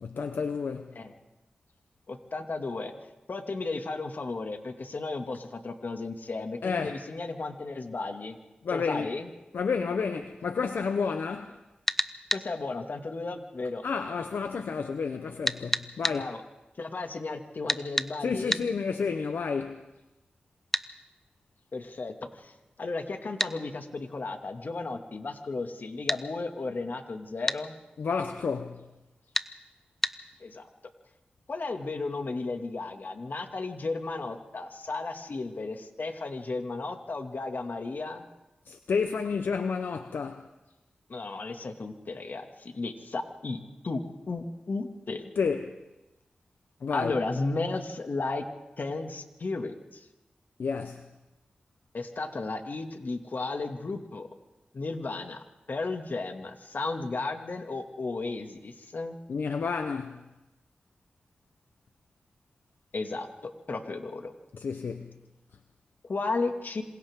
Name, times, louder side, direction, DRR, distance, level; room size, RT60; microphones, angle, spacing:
voice 1, 0.0-1.0 6.6-7.0 8.6-9.1 9.5-11.6 13.8-16.3 18.2-19.8 28.0-28.9 38.7-40.5 45.4-45.7 46.8-47.1 50.6-51.1 59.3-60.2 64.5-65.1, left 5 dB, 90° left, 0.9 m, -30 dB
voice 2, 2.1-2.9 3.3-8.4 8.7-9.3 12.3-13.8 16.1-16.4 16.8-18.7 21.7-22.5 22.8-27.7 30.4-30.6 31.5-38.2 41.1-44.0 44.3-45.3 46.9-48.4 48.8-50.1 51.9-54.3 54.7-59.2 62.9-63.3 63.7-64.3 66.1-66.8, left 3 dB, 65° left, 2.3 m, -34 dB
sound 1, 11.9-12.5 15.5-16.2 17.7-18.1 18.5-18.7 20.7-20.9 23.4-23.6 26.1-26.2 27.5-27.6 29.3-29.5 30.0-30.2, left 1 dB, 10° left, 0.9 m, -28 dB
27.0 x 26.5 x 3.7 m
cardioid pair, 45°, 3 cm